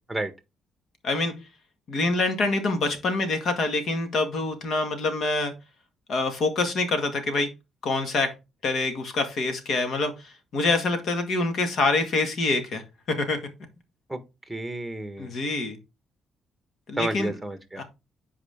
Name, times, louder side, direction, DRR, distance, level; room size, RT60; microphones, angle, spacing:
voice 1, 1.9-5.5 6.1-7.5 7.8-8.3 8.6-12.8 13.1-13.4 15.2-15.8 16.9-17.3 17.8-17.9, left 3 dB, 65° left, 1.9 m, -26 dB
voice 2, 14.5-15.3 17.0-17.8, right 1 dB, 5° right, 1.4 m, -31 dB
8.1 x 4.9 x 3.6 m
cardioid pair, 90°, 0 cm